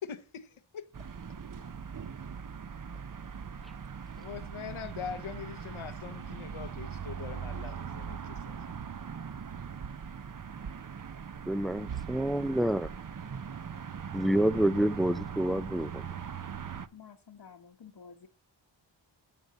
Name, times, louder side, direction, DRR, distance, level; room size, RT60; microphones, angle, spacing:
voice 1, 0.0-0.5 0.7-0.8 4.2-8.6, left 7 dB, 90° left, 1.0 m, -42 dB
sound 1, 0.9-16.9, right 7 dB, 45° right, 0.7 m, -40 dB
voice 2, 11.5-12.9 14.1-16.1, right 1 dB, ahead, 0.3 m, -28 dB
voice 3, 16.9-18.3, left 6 dB, 60° left, 1.1 m, -51 dB
14.5 x 5.4 x 4.1 m
cardioid pair, 55°, 47 cm